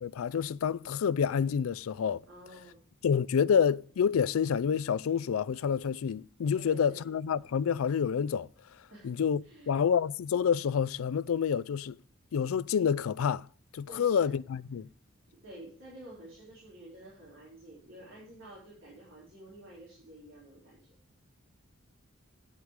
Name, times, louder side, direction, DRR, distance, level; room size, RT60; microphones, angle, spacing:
voice 1, 0.0-2.2 3.0-8.5 9.0-9.4 9.7-12.0 12.3-13.4 13.7-14.9, left 7 dB, 85° left, 0.4 m, -28 dB
voice 2, 2.3-2.8 6.5-7.0 8.9-9.1 9.4-9.7 13.9-14.4 15.4-20.9, right 1 dB, 65° right, 4.0 m, -50 dB
9.6 x 8.3 x 4.8 m
head